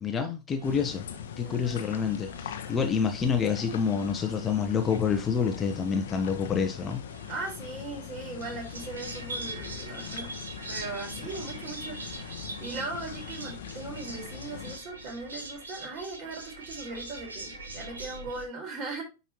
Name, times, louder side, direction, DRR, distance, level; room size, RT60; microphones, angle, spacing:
voice 1, 0.0-1.0 1.4-7.0, left 6 dB, 20° left, 0.9 m, -28 dB
sound 1, 0.6-14.8, left 8 dB, 60° left, 0.9 m, -41 dB
sound 2, 0.6-18.4, right 2 dB, 70° right, 1.8 m, -44 dB
voice 2, 1.4-1.8 7.3-10.3 10.7-19.0, right 3 dB, 35° right, 4.4 m, -39 dB
10.0 x 4.1 x 3.0 m
figure-of-eight pair, 90°, 0 cm